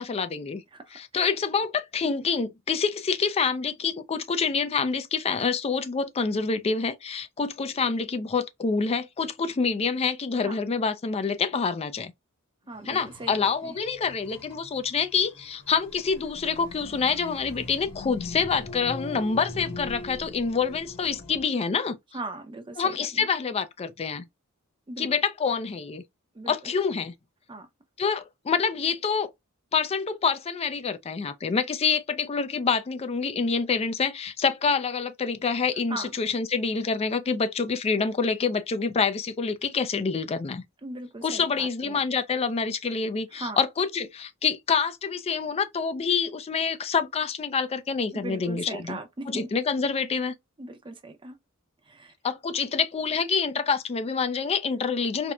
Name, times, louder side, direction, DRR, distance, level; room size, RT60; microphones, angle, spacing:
voice 1, 0.0-0.6 0.9-12.1 12.9-22.0 22.8-24.3 25.0-26.0 26.5-27.1 28.0-29.3 29.7-40.6 41.2-49.0 49.3-50.3 52.2-55.3, left 5 dB, 30° left, 0.4 m, -27 dB
voice 2, 0.7-1.2 10.4-10.6 12.7-13.8 22.1-23.3 24.9-25.1 26.3-26.7 27.5-27.7 35.9-36.1 40.8-42.0 43.3-43.6 48.1-49.5 50.6-51.4 51.8-52.1, right 2 dB, 25° right, 0.6 m, -39 dB
sound 1, 12.7-21.4, left 2 dB, 85° left, 1.3 m, -42 dB
4.3 x 2.1 x 2.3 m
head